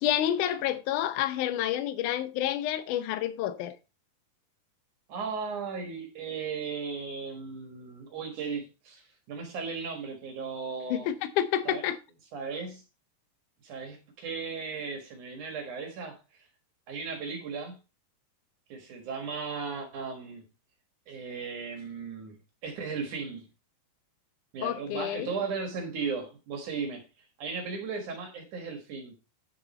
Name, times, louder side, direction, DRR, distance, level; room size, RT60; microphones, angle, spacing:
voice 1, 0.0-3.7 10.9-12.0 24.6-25.4, left 11 dB, 70° left, 2.1 m, -29 dB
voice 2, 5.1-11.1 11.7-11.8 12.3-12.8 13.6-16.2 16.9-17.8 18.7-20.4 21.1-22.4 22.6-23.5 24.5-27.0 27.4-29.2, right 5 dB, 60° right, 2.8 m, -36 dB
9.1 x 6.6 x 4.3 m
omnidirectional pair, 4.2 m